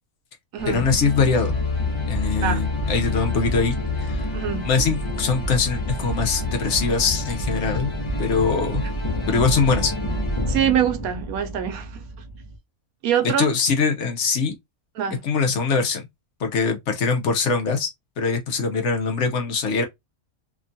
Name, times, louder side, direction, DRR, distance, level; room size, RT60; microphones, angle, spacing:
sound 1, 0.6-12.6, left 2 dB, 40° left, 0.4 m, -27 dB
voice 1, 0.7-1.6 2.1-4.3 4.6-7.9 8.2-8.8 9.3-9.9 13.4-14.6 15.2-16.1 16.4-17.9 18.2-19.8, left 5 dB, 65° left, 0.8 m, -22 dB
voice 2, 4.3-4.7 8.8-8.9 10.5-12.0 13.0-13.5 15.0-15.2, right 9 dB, 85° right, 1.1 m, -24 dB
2.9 x 2.3 x 2.5 m
omnidirectional pair, 1.5 m